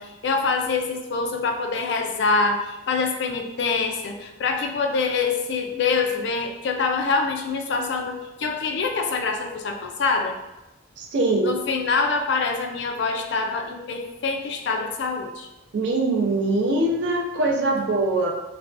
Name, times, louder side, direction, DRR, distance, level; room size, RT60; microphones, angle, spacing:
voice 1, 0.0-10.3 11.4-15.5, left 4 dB, 60° left, 4 dB, 0.3 m, -25 dB
voice 2, 11.0-11.6 15.7-18.3, right 2 dB, 60° right, 1 dB, 0.4 m, -22 dB
3.2 x 2.2 x 2.5 m, 0.98 s
head